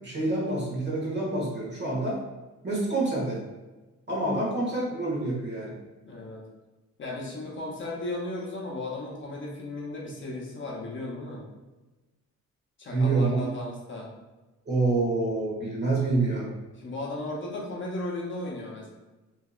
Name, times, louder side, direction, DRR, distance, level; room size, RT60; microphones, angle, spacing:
voice 1, 0.0-2.2 2.6-3.4 4.1-5.7 12.9-13.5 14.6-16.5, right 2 dB, 35° right, -5 dB, 1.3 m, -27 dB
voice 2, 6.0-6.4 7.0-11.5 12.8-14.1 16.8-18.9, left 2 dB, 40° left, -3 dB, 0.7 m, -35 dB
2.8 x 2.7 x 2.4 m, 1.1 s
cardioid pair, 90°, 30 cm